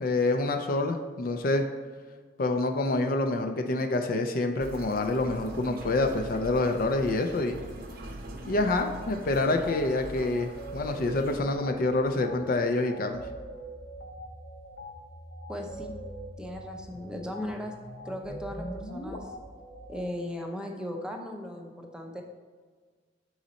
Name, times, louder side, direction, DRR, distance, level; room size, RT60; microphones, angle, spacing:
voice 1, 0.0-1.6 2.4-7.6 8.5-13.2, left 2 dB, 55° left, 5 dB, 0.5 m, -27 dB
sound 1, 4.6-11.4, right 1 dB, 55° right, 0.7 m, -42 dB
sound 2, 9.7-9.8 10.3-20.0, right 1 dB, 85° left, 0.9 m, -44 dB
sound 3, 13.2-19.2, equal, 25° left, 0.8 m, -46 dB
voice 2, 15.5-15.9 16.4-17.7 18.0-19.3 19.9-22.2, left 1 dB, 5° right, 2 dB, 0.5 m, -37 dB
6.1 x 3.9 x 4.1 m, 1.5 s
head